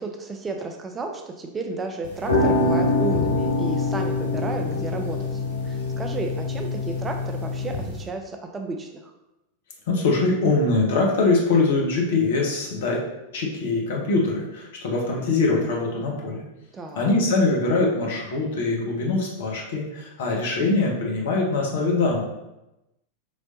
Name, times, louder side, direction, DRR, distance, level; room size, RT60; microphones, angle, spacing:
voice 1, 0.0-9.1 16.7-17.1, right 3 dB, 20° right, 4 dB, 0.4 m, -33 dB
sound 1, 2.0-8.0, left 2 dB, 80° left, 0.8 m, -25 dB
voice 2, 9.9-13.0 13.3-16.4 17.0-22.2, left 3 dB, 55° left, -2 dB, 1.0 m, -23 dB
5.0 x 3.2 x 2.7 m, 0.94 s
figure-of-eight pair, 90°, 0 cm